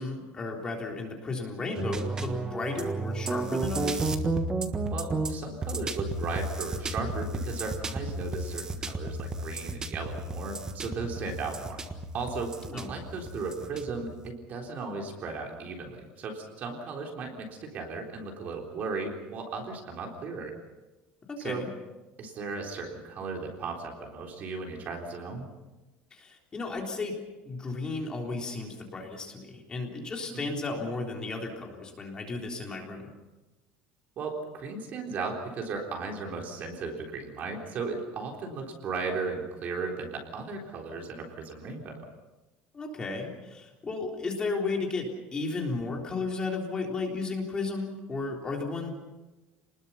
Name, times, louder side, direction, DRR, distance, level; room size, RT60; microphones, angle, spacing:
voice 1, 0.0-4.1 12.7-12.9 21.3-21.7 26.1-27.1 27.4-33.1 42.7-48.9, left 3 dB, 20° left, 1 dB, 3.7 m, -34 dB
sound 1, 1.8-14.3, right 2 dB, 15° right, 1.5 m, -33 dB
voice 2, 4.9-11.8 12.1-20.5 21.4-21.6 22.2-25.5 30.4-30.6 34.2-42.0, right 4 dB, 35° right, 1 dB, 3.8 m, -36 dB
28.5 x 20.5 x 5.8 m, 1.1 s
cardioid pair, 170°, 5 cm